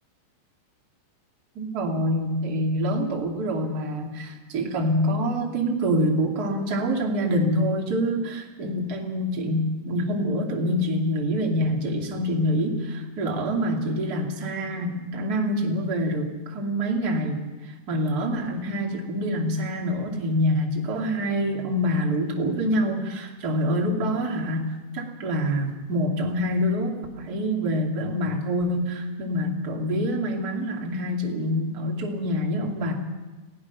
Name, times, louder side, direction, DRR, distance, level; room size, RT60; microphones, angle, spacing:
voice 1, 1.5-17.5 17.9-32.9, equal, 25° right, 0 dB, 2.2 m, -26 dB
29.5 x 16.5 x 6.0 m, 1.2 s
omnidirectional pair, 5.2 m